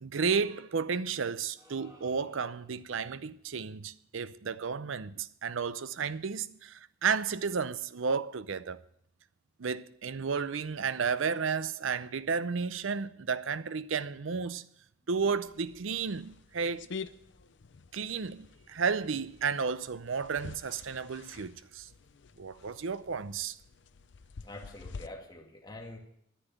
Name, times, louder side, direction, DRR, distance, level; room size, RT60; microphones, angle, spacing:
voice 1, 0.0-8.8 9.6-14.7 15.1-16.9 17.9-21.9 22.4-23.6, right 5 dB, 70° right, 0.6 m, -32 dB
sound 1, 1.6-2.9, equal, 20° right, 3.1 m, -57 dB
sound 2, 15.4-25.1, left 5 dB, 60° left, 0.5 m, -48 dB
voice 2, 24.4-26.0, left 2 dB, 20° left, 2.1 m, -46 dB
10.0 x 10.0 x 9.0 m
head